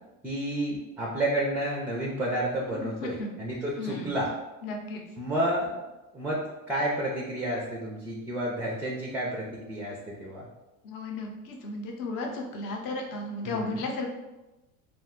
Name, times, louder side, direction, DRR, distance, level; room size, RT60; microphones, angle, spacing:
voice 1, 0.2-4.3 5.2-5.7 6.1-10.5 13.4-13.8, right 1 dB, 5° right, -3 dB, 0.3 m, -30 dB
voice 2, 2.7-3.3 3.8-4.1 4.6-5.0 10.8-14.1, left 2 dB, 50° left, 2 dB, 0.7 m, -34 dB
2.5 x 2.1 x 3.6 m, 1.0 s
hypercardioid pair, 90°, 41 cm